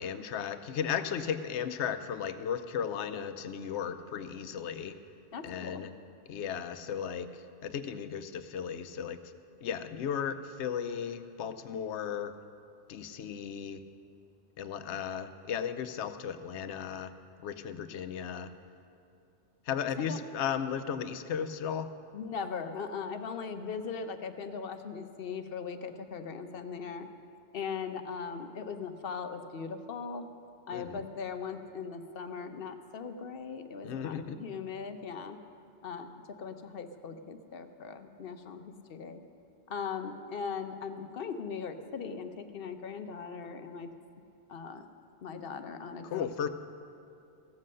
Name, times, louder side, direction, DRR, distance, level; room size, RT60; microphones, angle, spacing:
voice 1, 0.0-5.0 5.4-5.9 6.3-7.3 7.6-9.2 9.6-12.3 12.9-13.8 14.6-17.1 17.4-18.5 19.7-21.9 30.7-31.0 33.8-34.4 46.0-46.5, left 8 dB, 85° left, 11 dB, 0.9 m, -35 dB
voice 2, 5.3-5.8 20.0-20.2 22.1-27.1 27.5-30.3 30.7-35.4 35.8-36.1 36.4-39.2 39.7-43.9 44.5-44.9 45.2-46.5, left 5 dB, 60° left, 8 dB, 0.8 m, -39 dB
15.5 x 7.6 x 6.4 m, 2.5 s
omnidirectional pair, 1.2 m